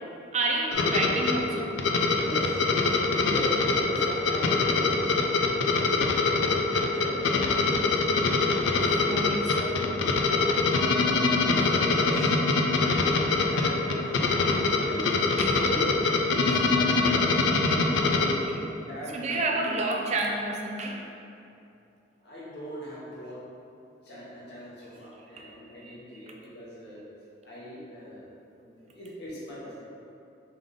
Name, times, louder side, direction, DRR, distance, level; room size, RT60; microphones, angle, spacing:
voice 1, 0.3-1.7 8.7-9.6 15.4-15.6 18.3-18.7 19.1-21.0 25.4-25.6 25.8-26.0, right 2 dB, 35° right, 0 dB, 0.4 m, -30 dB
sound 1, 0.7-18.3, left 3 dB, 80° left, 0.4 m, -24 dB
voice 2, 2.2-2.6 3.2-8.0 8.5-8.9 9.2-10.5 11.3-12.3 13.4-15.3 15.6-16.0 16.3-17.1 18.1-19.7 22.2-23.4 24.0-27.1 27.4-28.3 28.6-29.8, equal, 65° left, -7 dB, 1.1 m, -41 dB
3.5 x 3.4 x 3.7 m, 2.7 s
head